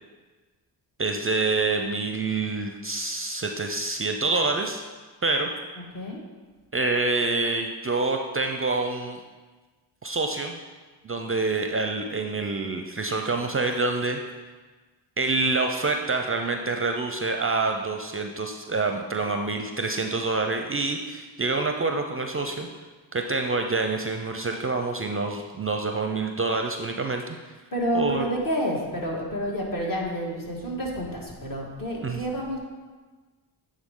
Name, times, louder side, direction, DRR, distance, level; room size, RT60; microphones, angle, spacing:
voice 1, 1.0-4.8 5.2-5.5 6.7-9.2 10.0-10.6 11.0-14.2 15.2-22.7 23.1-27.4 27.9-28.2 32.0-32.2, right 3 dB, 30° right, 4 dB, 0.5 m, -27 dB
voice 2, 27.7-32.6, equal, 45° left, -2 dB, 1.8 m, -29 dB
8.9 x 3.7 x 3.7 m, 1.3 s
supercardioid pair, 45°, 46 cm